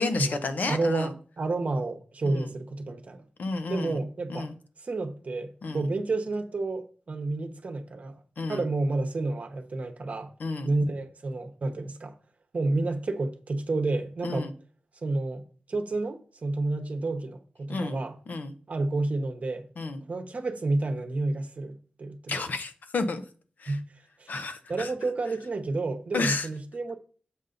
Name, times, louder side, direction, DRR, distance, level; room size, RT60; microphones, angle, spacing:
voice 1, 0.0-1.1 2.2-2.5 3.4-4.0 4.3-4.5 5.6-5.9 8.4-8.6 10.4-10.7 14.2-14.5 17.7-18.0 18.3-18.5 19.8-20.0 22.3-23.2 23.6-23.8 24.3-24.9 26.1-26.5, left 3 dB, 75° left, 0.8 m, -31 dB
voice 2, 0.7-3.2 3.7-4.5 4.8-8.1 8.5-10.3 10.6-12.1 12.5-14.5 15.0-15.4 15.7-18.2 18.7-19.7 20.1-22.4 23.7-23.9 24.2-24.3 24.7-27.0, right 2 dB, 55° right, 0.9 m, -30 dB
7.3 x 5.5 x 3.9 m
wide cardioid pair, 110°, 3 cm